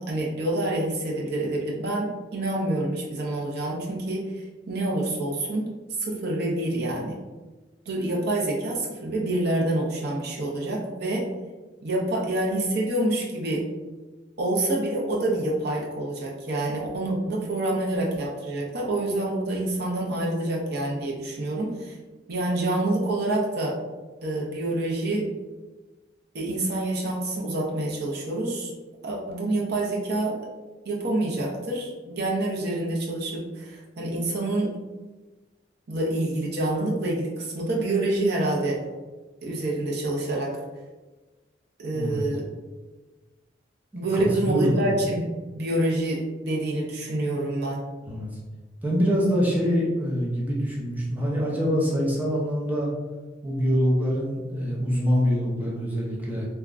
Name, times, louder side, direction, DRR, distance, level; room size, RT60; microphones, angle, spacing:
voice 1, 0.1-4.2 4.7-5.7 6.0-7.1 7.9-11.3 11.8-13.6 14.4-22.0 22.3-23.8 24.2-25.2 26.3-28.7 29.0-30.4 30.8-34.7 35.9-38.8 39.4-40.6 41.8-42.4 43.9-45.3 45.5-47.8, right 1 dB, 60° right, -3 dB, 0.6 m, -27 dB
voice 2, 41.9-42.3 43.9-44.9 48.0-48.3 48.8-52.9 53.4-56.5, equal, 10° right, -5 dB, 0.5 m, -25 dB
3.5 x 2.1 x 2.4 m, 1.2 s
head